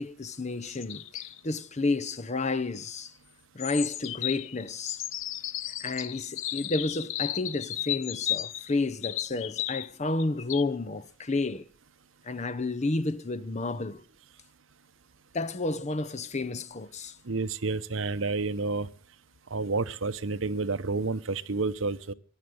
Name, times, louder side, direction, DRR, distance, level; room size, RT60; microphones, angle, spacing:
voice 1, 0.0-3.1 3.5-5.1 5.8-11.7 12.2-14.0 15.3-17.2, left 3 dB, 35° left, 0.8 m, -31 dB
sound 1, 0.7-1.4 3.6-9.9 10.2-10.6, left 13 dB, 80° left, 0.8 m, -34 dB
voice 2, 17.3-18.9 19.5-22.1, right 3 dB, 80° right, 1.0 m, -30 dB
16.0 x 11.5 x 7.9 m
head